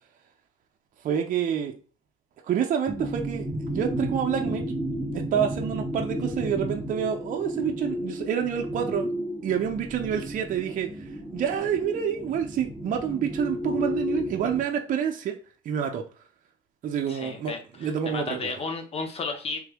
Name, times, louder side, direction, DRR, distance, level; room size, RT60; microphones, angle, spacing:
voice 1, 1.0-1.7 2.4-4.6 5.1-9.1 9.4-10.9 11.3-15.3 15.6-16.0 16.8-18.5, right 8 dB, 50° right, 3 dB, 0.7 m, -28 dB
sound 1, 2.9-14.6, equal, 10° right, 0.6 m, -32 dB
voice 2, 17.1-19.6, left 4 dB, 35° left, 5 dB, 0.9 m, -33 dB
3.5 x 3.2 x 2.2 m, 0.37 s
cardioid pair, 110°, 17 cm